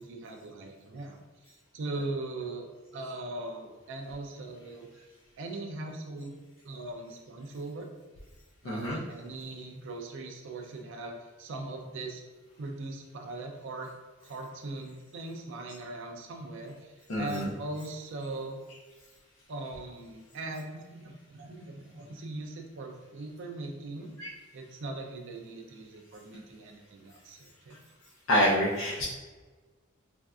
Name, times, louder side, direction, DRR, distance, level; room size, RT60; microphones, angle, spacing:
voice 1, 0.0-2.7 2.9-4.9 5.4-6.4 6.6-7.9 8.6-12.2 12.6-13.9 14.2-18.6 19.5-24.1 24.5-27.8, right 2 dB, 65° right, 2 dB, 0.4 m, -40 dB
voice 2, 8.6-9.0 17.1-17.5 24.2-24.3 28.3-29.0, equal, 70° left, -6 dB, 0.5 m, -26 dB
3.2 x 2.6 x 2.3 m, 1.3 s
head